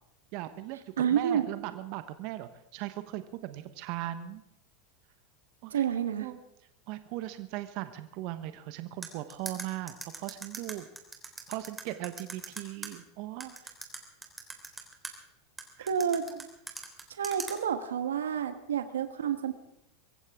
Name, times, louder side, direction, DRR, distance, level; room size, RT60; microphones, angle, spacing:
voice 1, 0.3-0.8 1.1-4.4 5.6-5.8 6.2-6.4 6.9-10.9 11.5-13.7 15.8-15.9 16.3-16.4, right 14 dB, 55° right, 10 dB, 1.1 m, -38 dB
voice 2, 1.0-1.5 5.7-6.3 15.9-16.3 17.2-19.5, right 8 dB, 85° right, 9 dB, 1.3 m, -29 dB
sound 1, 9.0-12.9 13.4-15.1 15.6-17.5, right 3 dB, 15° right, 3.6 m, -40 dB
24.5 x 15.0 x 3.7 m, 0.82 s
hypercardioid pair, 95°, 0 cm